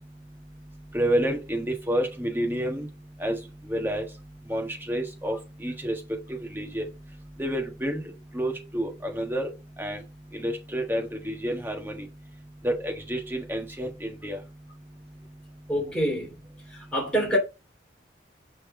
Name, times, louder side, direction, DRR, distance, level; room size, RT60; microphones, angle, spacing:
voice 1, 0.9-2.9 3.2-3.4 3.7-4.0 4.5-6.8 7.4-8.0 8.3-9.5 9.8-10.0 10.4-12.0 12.6-14.4, equal, 10° right, 1.5 m, -29 dB
voice 2, 15.7-16.3 16.9-17.4, equal, 5° left, 2.6 m, -25 dB
5.6 x 3.6 x 4.9 m
head